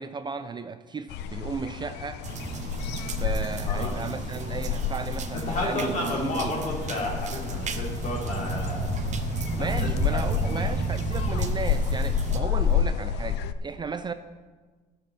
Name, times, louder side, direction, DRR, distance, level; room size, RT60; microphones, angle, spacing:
voice 1, 0.0-2.2 3.2-6.5 9.6-14.1, right 5 dB, 25° right, 10 dB, 0.5 m, -34 dB
sound 1, 1.1-13.5, left 8 dB, 80° left, 0.5 m, -30 dB
sound 2, 2.2-12.4, right 5 dB, 45° right, 0.9 m, -33 dB
voice 2, 3.7-4.0 5.5-8.9 9.5-10.5, left 1 dB, 50° left, -3 dB, 3.6 m, -32 dB
14.0 x 6.8 x 4.2 m, 1.4 s
cardioid pair, 110°, 17 cm